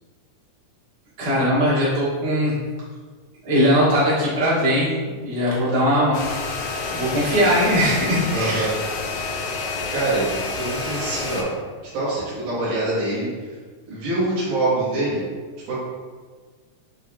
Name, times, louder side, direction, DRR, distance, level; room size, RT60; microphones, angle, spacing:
voice 1, 1.2-2.5 3.4-6.2 6.9-8.7, equal, 45° right, -8 dB, 1.4 m, -20 dB
sound 1, 6.1-11.4, left 3 dB, 80° left, 1.4 m, -29 dB
voice 2, 8.3-8.7 9.9-11.5 11.9-13.5 13.9-15.3 15.7-15.8, right 2 dB, 85° right, -10 dB, 2.6 m, -25 dB
6.6 x 2.8 x 2.2 m, 1.5 s
omnidirectional pair, 3.5 m